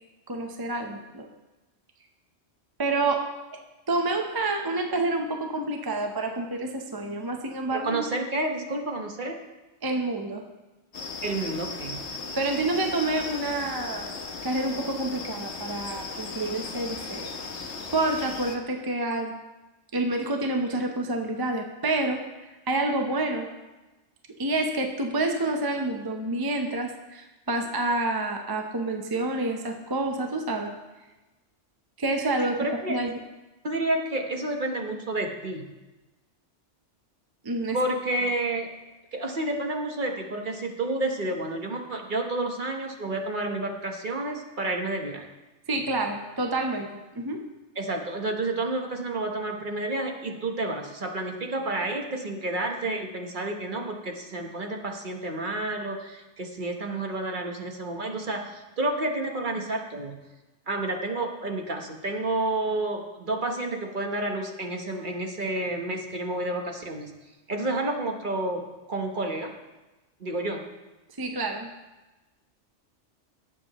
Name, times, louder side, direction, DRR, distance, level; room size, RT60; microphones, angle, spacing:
voice 1, 0.3-1.3 2.8-3.2 3.9-8.0 9.8-10.4 12.4-14.1 14.4-17.3 17.9-19.4 19.9-23.5 24.4-30.7 32.0-32.6 32.9-33.2 37.4-37.8 45.7-47.4 71.2-71.7, right 2 dB, 25° right, 3 dB, 0.7 m, -28 dB
voice 2, 7.7-9.4 11.2-12.0 32.4-33.0 33.6-35.6 37.7-38.7 39.1-45.3 47.8-60.2 60.7-67.1 67.5-68.6 68.9-69.5 70.2-70.6, right 2 dB, 45° right, 2 dB, 1.2 m, -30 dB
sound 1, 10.9-18.6, left 4 dB, 65° left, 1.3 m, -37 dB
18.0 x 7.5 x 3.0 m, 1.1 s
omnidirectional pair, 1.3 m